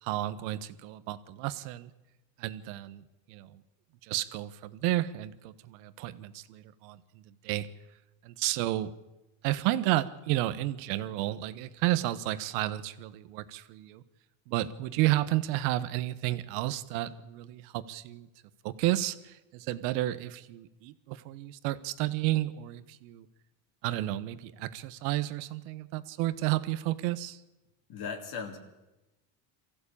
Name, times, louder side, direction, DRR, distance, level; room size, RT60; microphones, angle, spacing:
voice 1, 0.0-1.9 2.4-3.6 4.0-7.7 8.2-8.9 9.4-14.0 14.5-18.3 18.6-23.3 23.8-27.4, right 15 dB, 75° right, 14 dB, 1.5 m, -32 dB
voice 2, 27.9-28.6, left 5 dB, 55° left, 2 dB, 3.5 m, -37 dB
23.5 x 15.0 x 8.7 m, 1.0 s
supercardioid pair, 110°, 48 cm